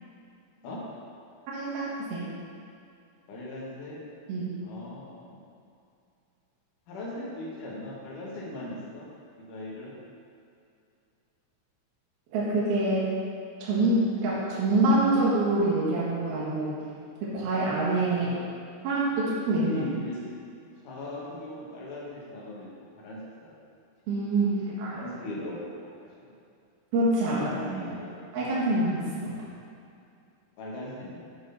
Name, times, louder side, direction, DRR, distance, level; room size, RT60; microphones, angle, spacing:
voice 1, 1.5-2.2 4.3-4.5 12.3-13.1 13.6-16.8 17.2-18.3 18.8-19.7 24.1-24.5 24.8-25.0 26.9-27.5 27.8-27.9 28.3-29.3, right 2 dB, 60° right, -8 dB, 3.0 m, -25 dB
voice 2, 3.3-4.0 4.6-5.4 6.9-9.1 9.4-9.9 18.1-18.4 19.6-20.3 20.8-22.7 23.0-23.5 24.5-26.4 27.3-28.1 30.6-31.2, left 1 dB, 60° left, -6 dB, 2.3 m, -39 dB
8.5 x 6.1 x 4.1 m, 2.5 s
omnidirectional pair, 5.7 m